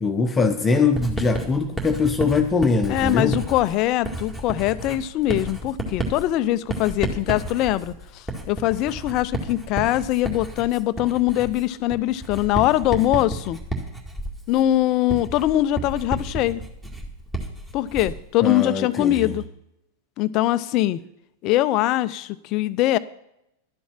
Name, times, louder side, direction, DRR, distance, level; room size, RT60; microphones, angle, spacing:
voice 1, 0.0-3.4 18.4-19.3, left 4 dB, 15° left, 5 dB, 1.0 m, -22 dB
Writing, 1.0-18.3, right 1 dB, 10° right, 2.0 m, -32 dB
voice 2, 2.9-13.6 14.5-16.6 17.7-19.4 20.2-21.0 21.4-23.0, left 14 dB, 40° left, 15 dB, 0.5 m, -22 dB
12.0 x 7.2 x 7.3 m, 0.81 s
figure-of-eight pair, 90°, 0 cm